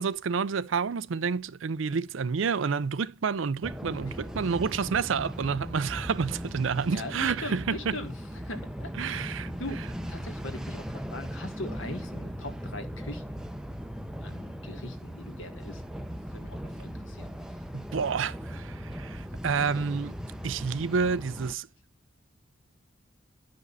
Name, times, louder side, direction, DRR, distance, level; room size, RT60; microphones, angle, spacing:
voice 1, 0.0-8.0 9.0-9.5 17.7-20.1 20.4-21.7, right 5 dB, 70° right, 0.5 m, -29 dB
sound 1, 3.6-21.5, equal, 5° right, 0.6 m, -38 dB
voice 2, 6.8-9.2 9.6-9.8 10.1-13.4 14.2-15.8 16.3-17.3, left 1 dB, 75° left, 1.7 m, -41 dB
11.5 x 5.2 x 4.0 m
head